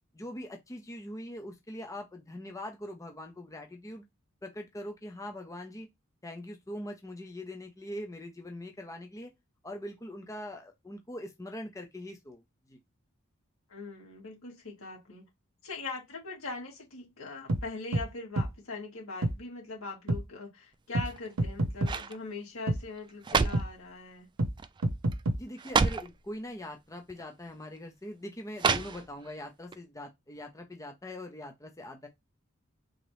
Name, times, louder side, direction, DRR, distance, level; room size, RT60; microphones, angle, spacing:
voice 1, 0.1-4.1 4.4-5.9 6.2-9.3 9.6-12.4 12.7-12.8 25.4-32.1, left 1 dB, 15° left, 0.6 m, -42 dB
voice 2, 13.7-15.2 15.6-24.3, left 3 dB, 80° left, 2.3 m, -41 dB
sound 1, 17.5-17.6 17.9-18.1 18.4-18.5 19.2-19.4 20.1-20.2 20.9-21.1 21.4-21.9 22.7-22.8 23.5-23.7 24.4-24.5 24.8-25.4, right 1 dB, 80° right, 0.7 m, -28 dB
sound 2, 21.0-21.4 21.8-22.2 23.0-23.8 24.6-24.8 25.1-25.2 25.6-26.2 27.1-27.2 28.6-29.3 29.7-29.8, right 5 dB, 20° right, 0.3 m, -29 dB
3.8 x 2.9 x 3.2 m
head